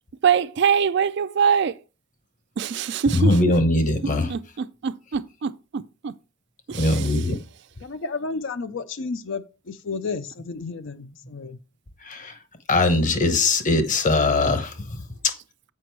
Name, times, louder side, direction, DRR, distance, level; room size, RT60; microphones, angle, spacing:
voice 1, 0.2-1.7 2.6-3.3 4.3-4.4 4.8-5.5 6.0-6.1 6.7-6.9, right 7 dB, 50° right, 0.3 m, -22 dB
voice 2, 3.1-4.3 6.7-7.4 12.0-12.3 12.7-14.7, left 2 dB, 35° left, 0.9 m, -21 dB
voice 3, 7.8-11.6, left 4 dB, 60° left, 0.5 m, -32 dB
7.6 x 5.1 x 4.6 m
head